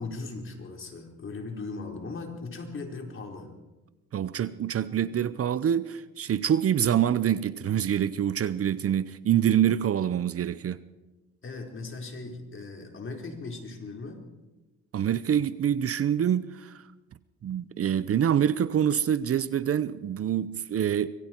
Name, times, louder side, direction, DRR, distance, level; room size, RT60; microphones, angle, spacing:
voice 1, 0.0-3.5 11.4-14.2, left 3 dB, 40° left, 4.5 m, -38 dB
voice 2, 4.1-10.8 14.9-16.8 17.4-21.1, right 9 dB, 50° right, 0.8 m, -26 dB
25.5 x 22.5 x 4.6 m
cardioid pair, 90°, 30 cm